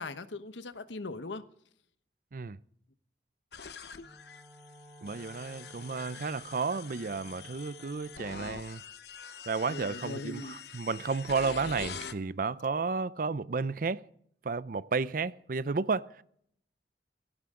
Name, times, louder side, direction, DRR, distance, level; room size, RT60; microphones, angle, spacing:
voice 1, 0.0-1.5 9.7-10.5, left 2 dB, 85° left, 1.0 m, -40 dB
sound 1, 3.5-12.1, left 6 dB, 65° left, 0.9 m, -45 dB
Wind instrument woodwind instrument, 4.0-8.5, equal, 10° right, 4.7 m, -54 dB
voice 2, 5.0-8.8 9.5-14.1 14.4-16.2, right 4 dB, 50° right, 0.5 m, -32 dB
17.5 x 16.5 x 3.7 m
head